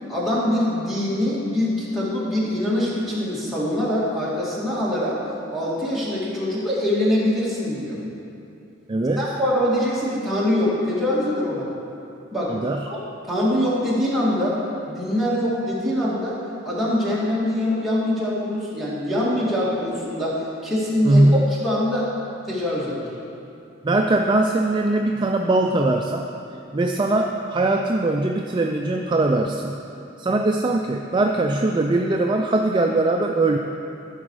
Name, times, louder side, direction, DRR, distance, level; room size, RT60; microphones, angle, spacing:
voice 1, 0.1-5.2 5.5-8.0 9.2-11.7 12.3-12.6 12.9-13.0 13.3-14.6 14.9-16.4 16.6-22.1 22.5-23.1, left 1 dB, ahead, -9 dB, 2.2 m, -23 dB
voice 2, 8.9-9.3 12.5-12.9 21.0-21.6 23.8-26.3 26.7-29.9 30.2-33.6, right 2 dB, 25° right, 2 dB, 0.3 m, -21 dB
13.5 x 6.1 x 4.8 m, 2.7 s
head